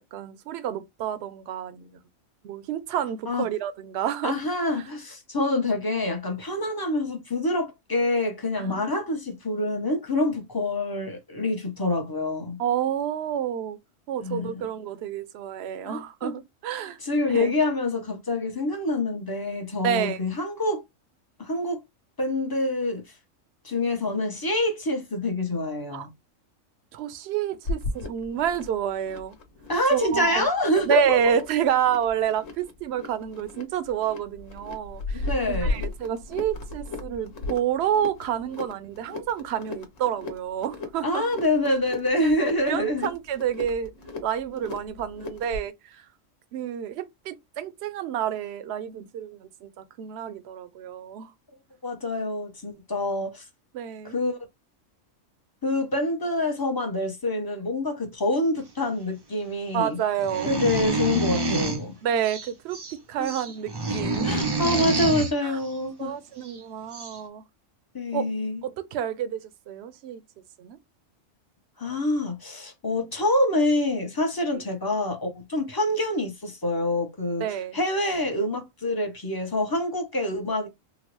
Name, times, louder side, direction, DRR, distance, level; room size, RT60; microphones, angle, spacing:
voice 1, 0.1-2.0 2.4-4.4 8.6-9.0 12.6-13.8 14.1-17.0 17.3-17.5 19.8-20.2 25.9-26.1 26.9-29.4 29.9-30.5 30.9-41.2 42.2-43.9 44.2-46.0 46.5-51.3 53.7-54.2 59.7-60.5 62.0-62.8 63.1-64.8 65.4-65.6 66.0-67.4 68.1-68.2 68.6-69.4 69.7-70.2 70.6-70.8 74.5-74.6 77.4-77.8, right 9 dB, 65° right, 0.7 m, -29 dB
voice 2, 4.2-12.6 14.2-14.7 15.8-16.4 17.0-20.8 21.4-21.8 22.2-23.0 23.6-26.1 29.7-31.3 35.1-35.8 41.0-43.1 51.8-53.4 54.0-54.4 55.6-60.0 60.4-62.0 63.2-63.3 64.2-66.1 67.9-68.6 71.8-77.4 77.7-80.7, left 2 dB, 25° left, 0.5 m, -26 dB
sound 1, 27.7-45.7, left 2 dB, 75° left, 1.2 m, -36 dB
sound 2, 60.2-61.8 62.2-62.9 63.2-65.3 66.5-66.6 66.9-67.2, right 2 dB, 45° right, 0.3 m, -27 dB
3.7 x 2.0 x 3.0 m
omnidirectional pair, 1.4 m